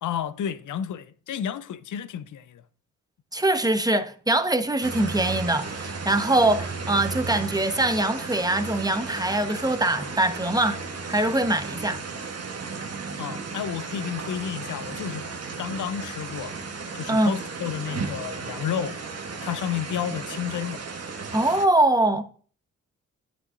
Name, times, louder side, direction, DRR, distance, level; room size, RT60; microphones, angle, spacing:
voice 1, 0.0-2.6 13.2-15.3 15.6-19.1 19.4-20.8, left 9 dB, 65° left, 0.7 m, -31 dB
voice 2, 3.3-10.8 11.1-12.0 17.1-17.4 21.3-22.2, right 2 dB, 10° right, 1.1 m, -23 dB
sound 1, 4.8-21.7, right 4 dB, 45° right, 1.3 m, -35 dB
9.6 x 8.5 x 2.6 m
supercardioid pair, 45°, 34 cm